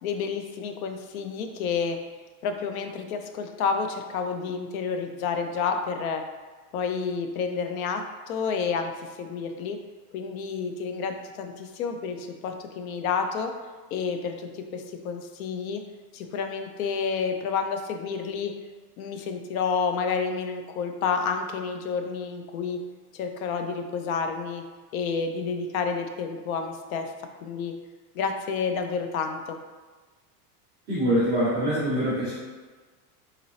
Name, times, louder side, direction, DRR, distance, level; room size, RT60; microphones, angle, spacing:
voice 1, 0.0-2.0 2.4-6.2 6.7-8.9 9.2-9.8 10.1-13.5 13.9-15.8 16.1-18.5 19.0-22.8 23.1-24.6 24.9-27.1 27.4-27.7 28.1-29.6, left 5 dB, 60° left, 6 dB, 0.5 m, -29 dB
voice 2, 30.9-32.3, equal, 10° right, -18 dB, 0.3 m, -24 dB
3.8 x 2.7 x 3.0 m, 1.4 s
supercardioid pair, 170°, 47 cm